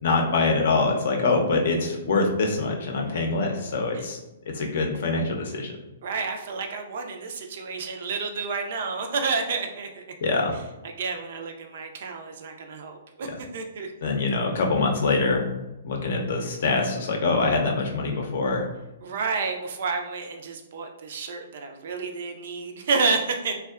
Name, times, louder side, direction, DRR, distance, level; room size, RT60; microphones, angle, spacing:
voice 1, 0.0-4.2 4.5-5.7 10.2-10.6 13.2-13.3 14.0-15.5 15.8-18.7, left 3 dB, 65° left, 1 dB, 0.5 m, -24 dB
voice 2, 6.0-10.0 10.8-13.9 19.0-23.5, right 4 dB, 60° right, 4 dB, 0.4 m, -30 dB
2.6 x 2.2 x 2.3 m, 0.99 s
hypercardioid pair, 125°, 0 cm